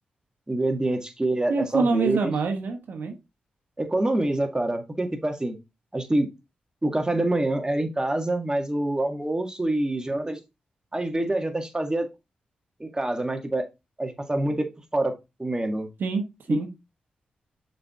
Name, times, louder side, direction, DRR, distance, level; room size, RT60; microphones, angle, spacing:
voice 1, 0.5-2.3 3.8-5.5 5.9-6.3 6.8-10.4 10.9-12.1 12.8-13.7 14.0-15.1 15.4-15.9 16.5-16.6, right 1 dB, 20° right, 5 dB, 1.8 m, -26 dB
voice 2, 1.5-3.1 16.0-16.7, right 4 dB, 75° right, 5 dB, 1.2 m, -26 dB
6.4 x 4.6 x 3.6 m, 0.24 s
supercardioid pair, 45°, 3 cm